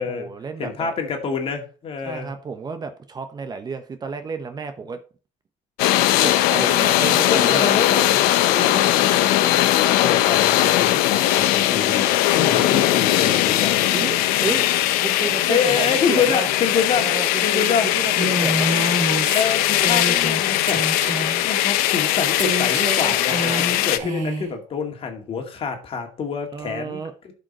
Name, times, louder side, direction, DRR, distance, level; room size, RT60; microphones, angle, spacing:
voice 1, 0.1-0.9 2.0-5.0 6.2-7.7 12.5-12.7 13.9-14.7 15.0-16.5 17.0-18.7 23.4-23.6 26.5-27.3, right 5 dB, 25° right, 8 dB, 1.0 m, -31 dB
voice 2, 0.6-2.3 7.3-13.9 15.5-17.1 17.4-17.9 19.3-20.8 21.4-27.3, left 6 dB, 40° left, 4 dB, 2.1 m, -27 dB
sound 1, 5.8-24.0, left 14 dB, 75° left, 0.8 m, -19 dB
Female speech woman speaking, 18.2-20.4 20.7-21.4 22.4-24.5, right 1 dB, 55° right, 3.3 m, -27 dB
12.0 x 5.3 x 4.3 m, 0.38 s
cardioid pair, 120°, 15 cm